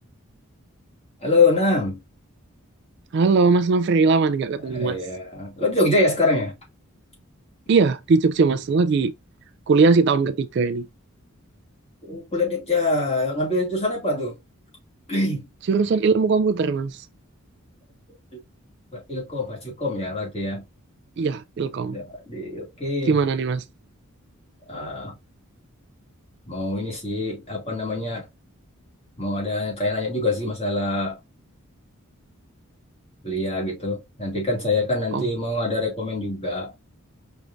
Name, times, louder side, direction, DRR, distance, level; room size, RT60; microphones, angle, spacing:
voice 1, 1.2-2.0 4.6-6.6 12.0-14.4 15.1-15.5 18.9-20.6 21.9-23.2 24.7-25.1 26.5-28.3 29.2-31.2 33.2-36.7, left 2 dB, 25° left, 2.2 m, -25 dB
voice 2, 3.1-5.0 7.7-9.1 9.7-10.9 15.7-17.1 21.2-22.0 23.1-23.6 35.1-35.3, right 4 dB, 50° right, 0.3 m, -20 dB
5.0 x 3.5 x 2.5 m
head